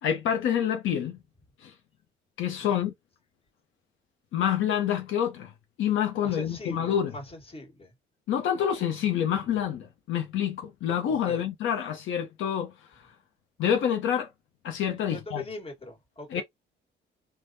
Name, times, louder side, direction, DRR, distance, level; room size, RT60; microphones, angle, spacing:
voice 1, 0.0-1.2 1.6-1.7 2.4-2.9 4.3-5.5 5.8-7.1 8.3-13.1 13.6-14.3 14.6-15.4 16.3-16.4, left 9 dB, 80° left, 0.7 m, -27 dB
voice 2, 6.2-7.9 11.0-11.4 15.1-16.4, left 2 dB, 30° left, 1.5 m, -41 dB
3.4 x 2.2 x 2.6 m
cardioid pair, 90°, 20 cm